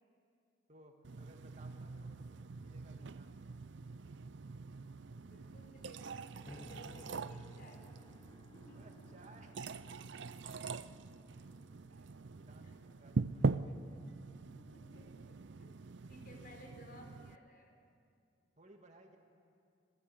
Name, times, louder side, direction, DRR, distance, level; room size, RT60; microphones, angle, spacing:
voice 1, 0.7-3.6 8.7-10.1 11.9-14.1 18.6-19.2, right 1 dB, 40° right, 3 dB, 2.0 m, -61 dB
sound 1, 1.0-17.4, right 4 dB, 65° right, 0.5 m, -43 dB
voice 2, 5.2-7.9 8.5-9.1 10.5-10.9 12.6-12.7 14.6-15.8 16.1-17.7, equal, 50° left, 2 dB, 4.2 m, -58 dB
sound 2, 6.4-14.8, left 1 dB, 25° left, 0.9 m, -60 dB
27.0 x 18.5 x 7.9 m, 2.4 s
head